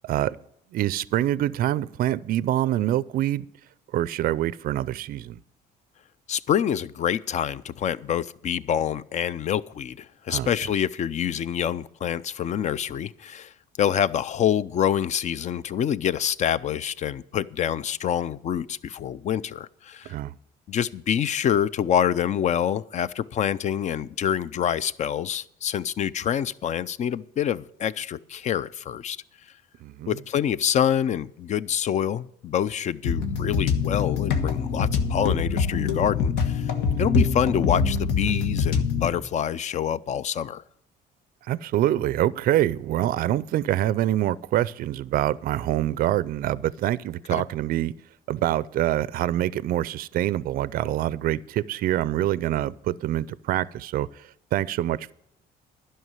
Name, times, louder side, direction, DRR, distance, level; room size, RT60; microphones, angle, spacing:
voice 1, 0.0-0.4 0.7-3.5 3.9-5.4 10.3-10.5 20.1-20.3 29.8-30.2 41.4-47.9 48.3-55.1, right 13 dB, 60° right, 0.4 m, -25 dB
voice 2, 6.3-20.1 20.7-29.2 30.1-36.7 37.0-40.6 47.3-47.4, left 9 dB, 45° left, 0.5 m, -26 dB
sound 1, 33.0-39.1, left 5 dB, 85° left, 1.3 m, -24 dB
11.0 x 5.7 x 8.9 m
cardioid pair, 110°, 17 cm